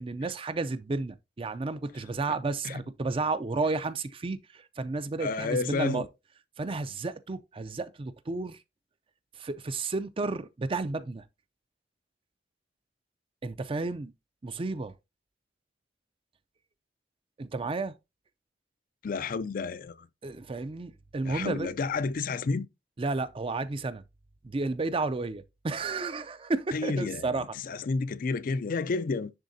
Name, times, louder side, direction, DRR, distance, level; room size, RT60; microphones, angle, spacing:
voice 1, 0.0-6.0 6.6-8.6 9.4-11.2 13.4-14.1 14.4-14.9 17.4-17.9 20.2-21.7 23.0-24.0 24.4-27.6, right 3 dB, 30° right, 0.5 m, -32 dB
voice 2, 5.2-6.1 19.0-20.1 21.2-22.7 26.7-29.3, left 4 dB, 50° left, 0.4 m, -31 dB
10.5 x 3.5 x 2.7 m
head